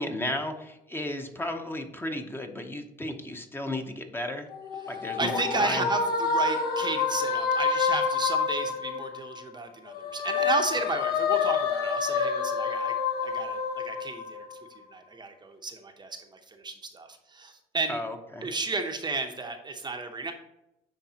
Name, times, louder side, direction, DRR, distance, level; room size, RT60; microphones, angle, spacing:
voice 1, 0.0-4.5 4.9-5.9 17.9-18.5, left 1 dB, 15° left, 4 dB, 0.7 m, -34 dB
sound 1, 4.5-9.5 9.9-14.6, left 5 dB, 70° left, 1.1 m, -28 dB
voice 2, 4.8-12.9 13.2-14.6 14.9-18.0 18.4-20.3, right 3 dB, 25° right, 5 dB, 0.7 m, -33 dB
9.8 x 3.5 x 2.8 m, 0.84 s
cardioid pair, 110°, 17 cm